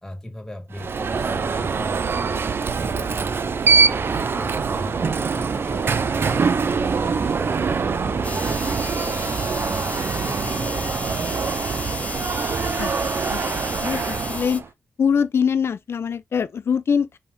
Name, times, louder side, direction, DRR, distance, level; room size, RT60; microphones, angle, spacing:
voice 1, 0.0-2.4 2.8-5.8 6.2-9.8 10.2-11.5, left 1 dB, 10° left, 2.0 m, -38 dB
Alarm, 0.7-14.7, right 5 dB, 55° right, 0.5 m, -24 dB
sound 1, 8.2-14.6, left 3 dB, 30° left, 0.7 m, -33 dB
voice 2, 13.3-14.6 15.0-17.2, left 6 dB, 65° left, 0.4 m, -23 dB
5.3 x 3.4 x 2.7 m
cardioid pair, 70°, 5 cm